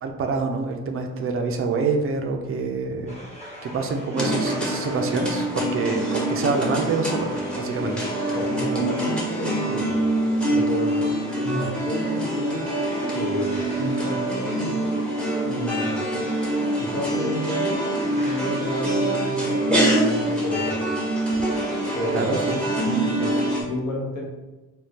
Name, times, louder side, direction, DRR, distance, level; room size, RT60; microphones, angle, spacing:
voice 1, 0.0-3.1 3.6-7.9 22.1-22.6 22.8-23.4, right 4 dB, 45° right, 4 dB, 0.5 m, -26 dB
sound 1, 3.1-22.8, equal, 20° left, 1.2 m, -42 dB
Cool Stringz, 4.1-23.6, right 1 dB, 5° left, 0.8 m, -25 dB
voice 2, 8.3-10.0 10.5-12.6 13.1-14.9 15.4-16.0 16.8-20.9 21.9-22.5 23.5-24.3, left 1 dB, 65° left, -2 dB, 1.0 m, -31 dB
3.5 x 2.3 x 2.8 m, 1.2 s
cardioid pair, 90°, 30 cm